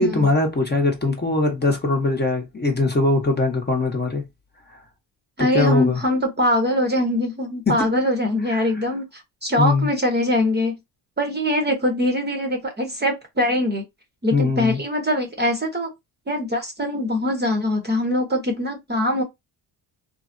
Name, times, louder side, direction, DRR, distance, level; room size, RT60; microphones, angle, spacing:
voice 1, 0.0-4.2 4.7-4.8 5.4-6.0 7.7-7.8 8.5-8.6 9.6-9.9 14.3-14.8, left 3 dB, 20° left, 0.9 m, -21 dB
voice 2, 5.4-10.7 11.2-13.8 14.2-15.9 16.3-19.2, left 1 dB, 20° right, 0.8 m, -22 dB
3.2 x 2.0 x 2.5 m
cardioid pair, 80°, 47 cm